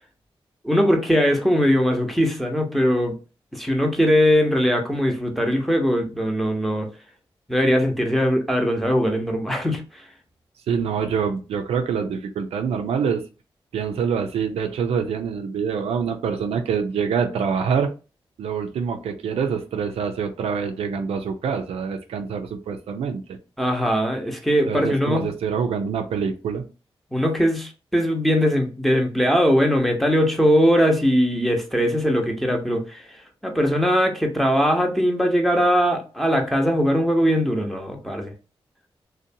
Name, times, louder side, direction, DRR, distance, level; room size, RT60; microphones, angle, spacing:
voice 1, 0.6-3.2 3.5-6.9 7.5-10.0 23.6-25.3 27.1-33.0 33.4-38.3, equal, ahead, 0.8 m, -20 dB
voice 2, 10.7-13.2 13.7-17.9 18.4-23.4 24.7-26.7, right 6 dB, 90° right, 0.4 m, -25 dB
2.6 x 2.1 x 2.6 m
cardioid pair, 55°, 10 cm